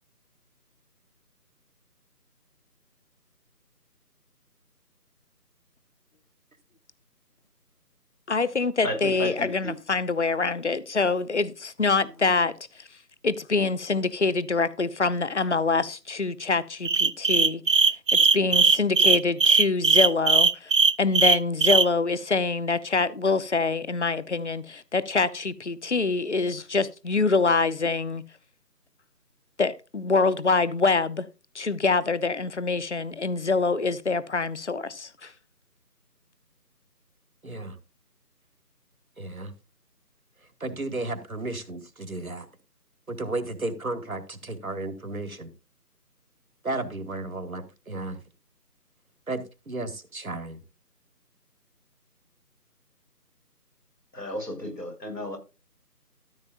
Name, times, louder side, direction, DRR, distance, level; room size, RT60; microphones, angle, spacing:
voice 1, 8.3-12.5 13.2-17.9 18.3-20.7 21.0-28.2 29.6-31.3 31.5-35.3, left 4 dB, 45° left, 0.8 m, -25 dB
voice 2, 8.8-9.7 12.0-12.1 54.1-55.4, equal, 85° left, 6.1 m, -33 dB
sound 1, 16.8-21.9, right 5 dB, 90° right, 0.9 m, -19 dB
voice 3, 37.4-37.8 39.2-39.5 40.6-42.5 43.1-45.5 46.6-48.2 49.3-50.6, right 2 dB, 60° right, 2.0 m, -33 dB
14.0 x 8.9 x 2.5 m
figure-of-eight pair, 160°, 48 cm